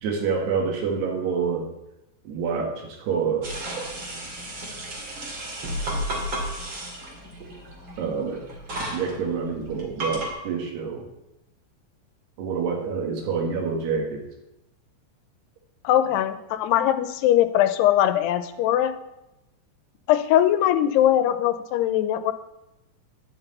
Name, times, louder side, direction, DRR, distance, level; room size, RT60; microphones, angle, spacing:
voice 1, 0.0-1.6 2.3-3.5 8.0-8.4 8.9-11.0 12.4-14.2, right 5 dB, 80° right, 1 dB, 4.0 m, -27 dB
sound 1, 3.4-10.3, right 1 dB, 40° right, 2.4 m, -33 dB
voice 2, 15.8-18.9 20.1-22.3, left 12 dB, 85° left, 11 dB, 2.8 m, -21 dB
10.0 x 6.0 x 8.1 m, 0.92 s
omnidirectional pair, 4.6 m